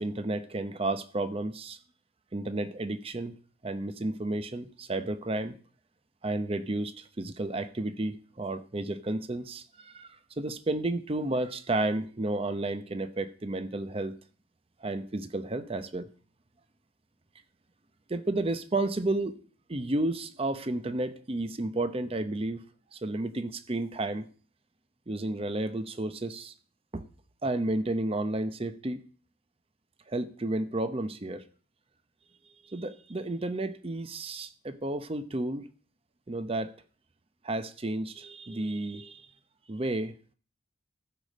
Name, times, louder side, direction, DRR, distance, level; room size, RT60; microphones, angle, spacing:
voice 1, 0.0-1.8 2.3-3.3 3.6-5.6 6.2-14.2 14.8-16.1 18.1-19.4 19.7-22.6 22.9-24.3 25.1-26.5 26.9-27.0 27.4-29.0 30.1-31.4 32.6-35.7 36.3-36.7 37.4-39.3 39.7-40.1, right 2 dB, 30° right, 0.7 m, -32 dB
15.0 x 5.1 x 6.3 m
head